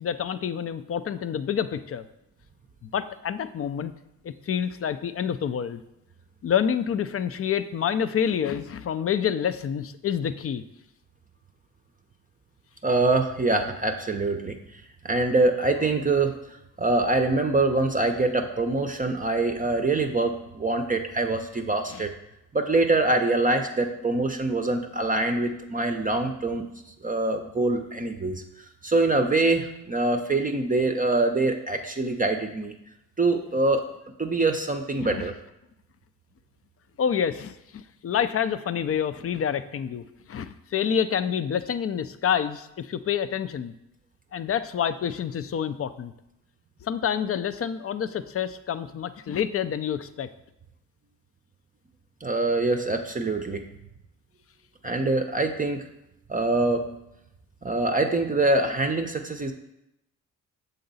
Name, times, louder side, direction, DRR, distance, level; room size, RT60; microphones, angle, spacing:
voice 1, 0.0-2.0 2.8-3.9 4.2-5.8 6.4-10.6 21.9-22.0 35.0-35.3 37.0-43.7 44.3-46.1 46.8-50.3, left 8 dB, 35° left, 12 dB, 0.5 m, -28 dB
voice 2, 12.8-16.3 16.8-22.1 22.5-26.7 27.0-28.4 28.8-32.7 33.2-33.8 34.2-35.3 52.2-53.7 54.8-55.8 56.3-56.8 57.6-59.5, right 2 dB, 20° right, 4 dB, 0.6 m, -24 dB
6.6 x 3.9 x 4.0 m, 0.85 s
supercardioid pair, 55°, 40 cm